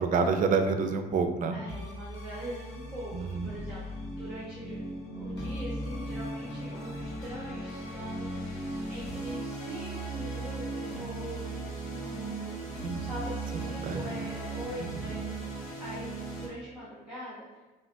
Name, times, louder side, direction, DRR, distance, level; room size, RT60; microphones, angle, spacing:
voice 1, 0.0-1.6 3.1-3.5 12.8-13.0 13.8-14.0, right 5 dB, 50° right, 6 dB, 0.5 m, -27 dB
voice 2, 1.5-3.1 3.4-4.8 5.1-11.6 11.8-12.6 13.0-17.4, equal, 5° right, -9 dB, 1.2 m, -42 dB
sound 1, 1.7-16.5, right 2 dB, 85° left, 1.2 m, -37 dB
5.9 x 2.3 x 2.6 m, 1.2 s
cardioid pair, 110°, 17 cm